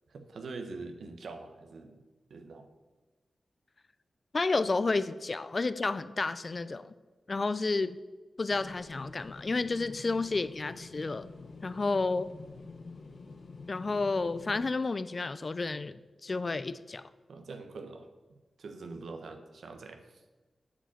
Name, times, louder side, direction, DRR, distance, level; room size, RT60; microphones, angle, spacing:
voice 1, 0.1-2.0 2.3-2.7 17.3-18.1 18.6-20.2, right 3 dB, 80° right, 1.0 m, -44 dB
voice 2, 4.3-6.9 7.3-8.0 8.4-11.3 11.6-12.3 13.7-17.0, left 3 dB, 45° left, 0.4 m, -31 dB
sound 1, 8.5-14.7, left 3 dB, 60° left, 0.8 m, -48 dB
8.4 x 5.1 x 7.2 m
cardioid pair, 70°, 0 cm